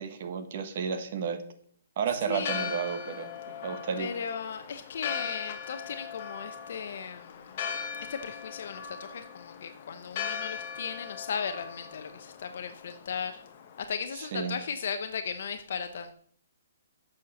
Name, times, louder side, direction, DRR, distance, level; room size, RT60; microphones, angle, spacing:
voice 1, 0.0-1.4 2.0-4.1 14.3-14.6, right 6 dB, 45° right, 8 dB, 1.3 m, -32 dB
voice 2, 2.3-2.7 4.0-7.6 8.1-13.4 13.9-16.1, left 6 dB, 55° left, 8 dB, 0.8 m, -36 dB
Church bell, 2.3-13.8, left 7 dB, 40° left, 1.3 m, -39 dB
8.5 x 6.5 x 6.4 m, 0.62 s
hypercardioid pair, 165°, 0 cm